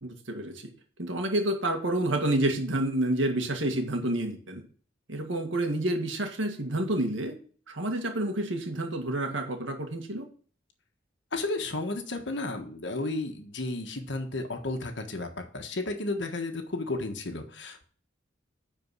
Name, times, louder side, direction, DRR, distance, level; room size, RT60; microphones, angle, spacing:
voice 1, 0.0-0.7 1.0-4.6 5.1-7.4 7.7-10.3, right 1 dB, 85° right, 4 dB, 1.9 m, -29 dB
voice 2, 11.3-15.3 15.5-17.8, left 2 dB, 65° left, 4 dB, 1.5 m, -33 dB
9.8 x 4.5 x 6.2 m, 0.43 s
head